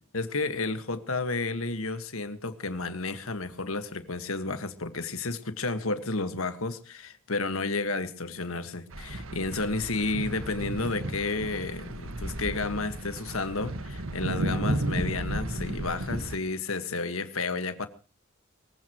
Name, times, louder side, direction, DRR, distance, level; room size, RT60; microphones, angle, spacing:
voice 1, 0.1-17.9, left 3 dB, 75° left, 1.6 m, -31 dB
sound 1, 8.9-16.4, right 1 dB, 70° right, 1.6 m, -33 dB
23.5 x 15.5 x 3.1 m
head